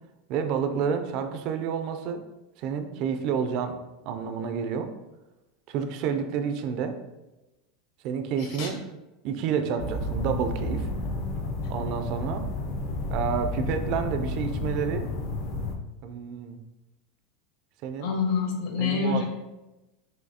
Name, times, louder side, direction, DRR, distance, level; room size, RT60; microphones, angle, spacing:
voice 1, 0.3-2.2 2.6-3.8 4.1-4.9 5.7-7.0 8.0-8.8 9.2-10.9 11.7-12.5 13.1-15.1 16.0-16.6 17.8-18.1 18.8-19.3, right 7 dB, 40° right, 7 dB, 0.4 m, -29 dB
voice 2, 8.4-8.7 18.0-19.3, left 5 dB, 55° left, 2 dB, 1.0 m, -27 dB
sound 1, 9.8-15.7, left 2 dB, 40° left, 0.5 m, -31 dB
6.2 x 2.7 x 2.8 m, 1.0 s
supercardioid pair, 175°, 0 cm